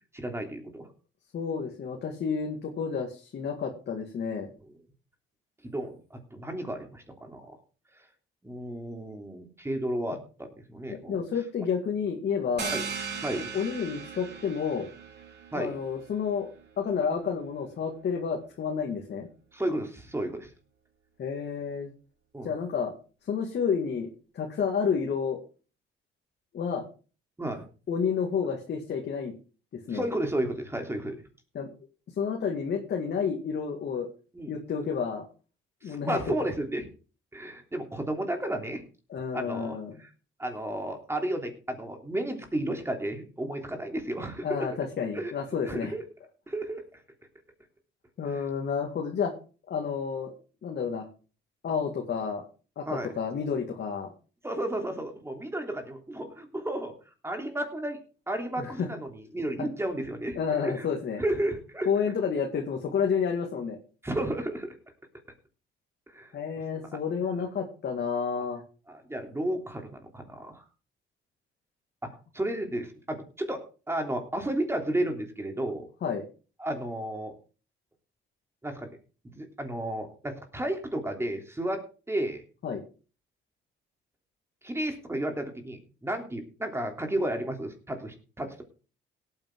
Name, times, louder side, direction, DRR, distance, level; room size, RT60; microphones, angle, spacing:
voice 1, 0.1-0.9 5.6-7.6 8.4-11.2 12.7-12.8 13.2-13.5 15.5-15.7 19.5-20.5 22.3-22.5 27.4-27.6 29.9-31.2 34.3-34.6 35.8-36.9 37.3-38.8 39.3-40.1 40.4-44.7 45.1-45.3 45.6-46.0 46.5-46.8 48.3-48.5 52.8-53.1 54.4-56.9 57.2-58.0 58.3-60.9 61.2-61.9 64.0-64.7 66.1-66.3 68.9-70.6 72.0-75.9 76.6-77.3 78.6-78.9 79.2-82.4 84.6-88.6, right 1 dB, 15° right, 4 dB, 3.3 m, -33 dB
voice 2, 1.3-4.5 10.9-12.7 13.5-14.9 15.5-16.5 16.8-19.3 21.2-21.9 22.4-22.9 23.3-24.1 24.3-25.4 26.5-26.9 27.9-29.3 29.7-30.1 31.5-31.7 32.2-34.1 34.5-35.3 35.8-36.3 39.1-40.0 44.4-45.9 48.2-49.3 49.7-50.3 50.6-51.1 51.6-52.5 52.8-54.1 58.6-58.9 59.6-59.7 60.4-61.2 61.9-63.8 66.3-68.6 76.0-76.3 82.6-82.8, left 6 dB, 60° left, 1 dB, 2.2 m, -30 dB
sound 1, 12.6-18.0, right 6 dB, 55° right, 3.6 m, -39 dB
17.5 x 8.9 x 3.8 m, 0.36 s
cardioid pair, 90°, 20 cm